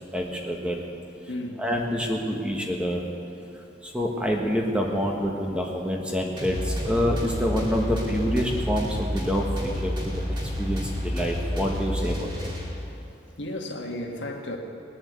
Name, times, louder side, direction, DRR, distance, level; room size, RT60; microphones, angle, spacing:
voice 1, 0.1-0.8 1.6-3.0 3.8-10.2 10.6-12.5, equal, 5° right, 0 dB, 1.3 m, -27 dB
voice 2, 1.3-1.6 13.4-14.6, left 1 dB, 75° left, 1 dB, 1.7 m, -33 dB
sound 1, 6.4-13.1, equal, 25° right, 3.3 m, -30 dB
20.0 x 7.0 x 8.3 m, 2.6 s
head